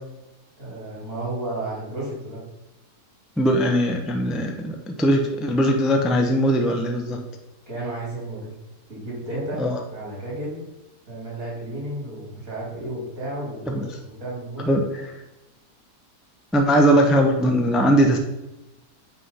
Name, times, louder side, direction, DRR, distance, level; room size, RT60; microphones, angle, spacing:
voice 1, 0.6-2.4 7.7-8.5 8.9-9.6 9.9-10.6 11.1-14.8, right 1 dB, 55° right, -5 dB, 3.4 m, -32 dB
voice 2, 3.4-7.2 9.6-9.8 13.7-13.8 14.7-14.8 16.5-18.2, equal, ahead, 3 dB, 0.3 m, -20 dB
8.5 x 3.8 x 5.6 m, 0.98 s
omnidirectional pair, 1.7 m